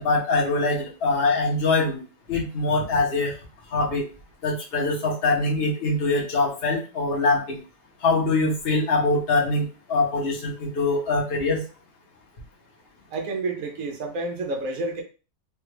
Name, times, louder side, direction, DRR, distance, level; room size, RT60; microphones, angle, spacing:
voice 1, 0.0-2.0 2.3-3.3 3.7-4.0 4.4-7.6 8.0-11.6, left 3 dB, 45° left, -1 dB, 1.0 m, -23 dB
voice 2, 13.1-15.0, right 2 dB, 65° right, 2 dB, 1.0 m, -29 dB
3.3 x 2.4 x 3.2 m, 0.34 s
omnidirectional pair, 1.7 m